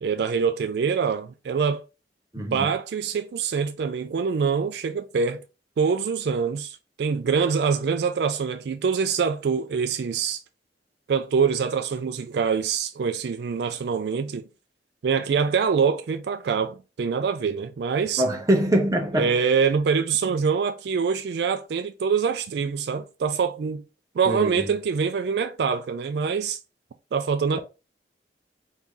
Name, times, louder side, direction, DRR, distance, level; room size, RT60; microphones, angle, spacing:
voice 1, 0.0-1.8 2.4-5.4 5.8-10.4 11.1-14.5 15.0-18.2 19.1-23.8 24.2-26.6 27.1-27.6, right 6 dB, 65° right, 0.3 m, -25 dB
voice 2, 18.2-19.3 24.3-24.7, right 1 dB, 20° right, 0.9 m, -23 dB
4.6 x 2.8 x 3.7 m
head